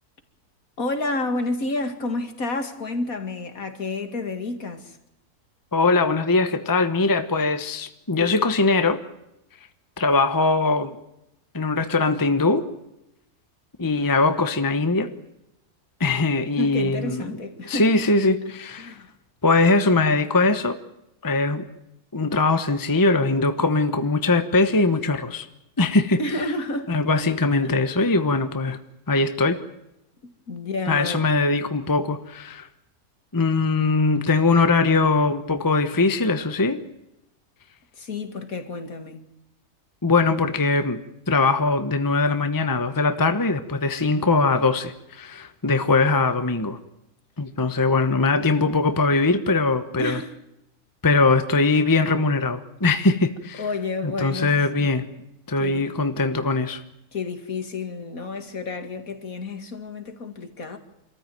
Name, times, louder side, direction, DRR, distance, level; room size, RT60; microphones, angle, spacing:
voice 1, 0.8-5.0 16.6-17.9 18.8-19.1 26.2-28.2 30.2-31.3 38.0-39.2 50.0-50.3 53.6-54.5 54.8-54.9 55.6-55.8 57.1-60.8, left 2 dB, 60° left, 2.6 m, -30 dB
voice 2, 5.7-9.0 10.0-11.0 11.5-12.7 13.8-15.1 16.0-17.4 17.7-19.0 19.4-20.8 21.2-21.7 22.1-25.5 25.8-26.2 26.9-28.8 29.1-29.6 30.9-32.7 33.3-36.8 40.0-41.0 41.3-46.8 47.4-50.2 51.0-53.6 54.0-55.1 55.5-56.8, left 3 dB, 15° left, 1.0 m, -21 dB
26.0 x 14.5 x 9.4 m
omnidirectional pair, 1.7 m